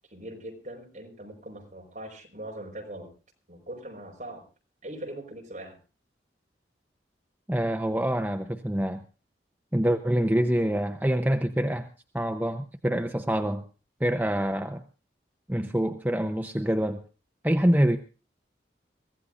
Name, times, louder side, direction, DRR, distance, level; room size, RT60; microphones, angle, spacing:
voice 1, 0.1-3.1 3.5-4.4 4.8-5.8, right 1 dB, 45° right, 0 dB, 4.8 m, -41 dB
voice 2, 7.5-9.0 9.7-11.9 12.1-13.6 14.0-14.8 15.5-17.0 17.4-18.0, equal, 10° right, 5 dB, 0.7 m, -25 dB
23.5 x 15.5 x 2.6 m, 0.33 s
head